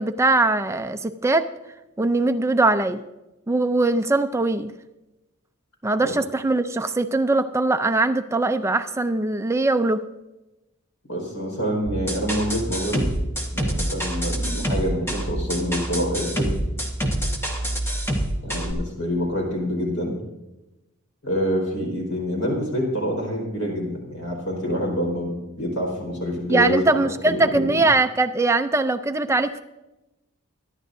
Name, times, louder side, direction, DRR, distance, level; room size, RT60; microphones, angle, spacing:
voice 1, 0.0-1.5 2.0-3.0 3.5-4.7 5.8-10.0 26.5-29.6, right 2 dB, 15° right, 9 dB, 0.4 m, -21 dB
voice 2, 11.1-13.1 13.5-16.6 18.4-20.1 21.2-26.8 27.2-27.8, equal, 75° left, -1 dB, 4.5 m, -26 dB
sound 1, 11.9-18.7, right 1 dB, 10° left, 1.5 m, -27 dB
23.5 x 11.0 x 2.7 m, 0.98 s
head